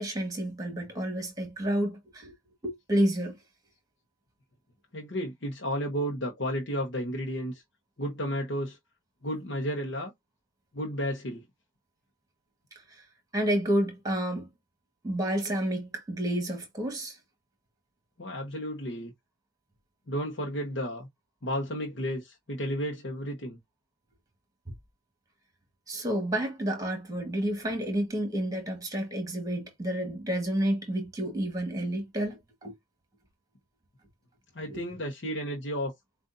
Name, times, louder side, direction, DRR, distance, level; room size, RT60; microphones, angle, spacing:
voice 1, 0.0-2.3 2.6-3.4 12.9-13.0 13.3-14.5 15.0-17.2 25.9-32.7 34.7-34.8, right 1 dB, 20° right, 1.6 m, -30 dB
voice 2, 4.9-7.6 8.0-8.8 9.2-10.1 10.7-11.4 18.2-19.1 20.1-21.1 21.4-23.6 34.5-35.9, equal, 60° left, 0.9 m, -32 dB
7.5 x 2.5 x 2.6 m
head